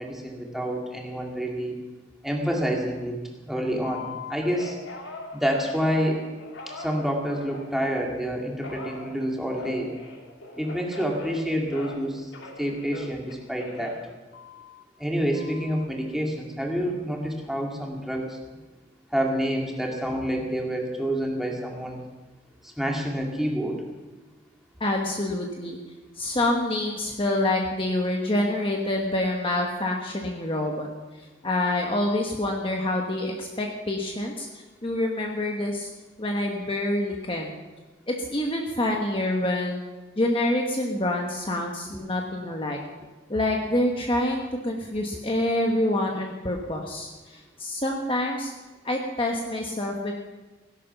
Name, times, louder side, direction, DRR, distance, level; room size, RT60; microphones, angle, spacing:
voice 1, 0.0-1.7 2.2-3.2 3.5-4.8 5.3-6.2 6.8-9.9 10.6-12.3 12.6-14.0 15.0-18.4 19.1-22.0 22.6-23.8 41.9-42.0, equal, ahead, -1 dB, 2.2 m, -28 dB
Telephone, 3.8-8.1 8.6-12.1 12.3-14.8 15.3-15.8, left 3 dB, 75° left, 2.5 m, -41 dB
voice 2, 24.8-25.8 26.2-30.9 31.4-35.9 36.2-37.6 38.1-39.8 40.2-42.8 43.3-48.5 48.8-50.1, left 1 dB, 30° left, 1 dB, 1.2 m, -27 dB
17.0 x 11.0 x 5.9 m, 1.2 s
head